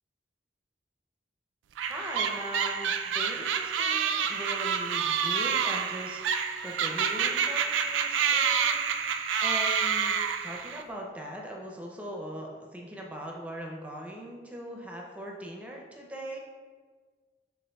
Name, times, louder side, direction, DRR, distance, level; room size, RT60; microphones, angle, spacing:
sound 1, 1.8-10.8, right 7 dB, 90° right, 0.3 m, -28 dB
voice 1, 1.9-6.2 6.6-16.4, equal, 10° right, -1 dB, 0.4 m, -40 dB
6.5 x 3.4 x 2.2 m, 1.5 s
head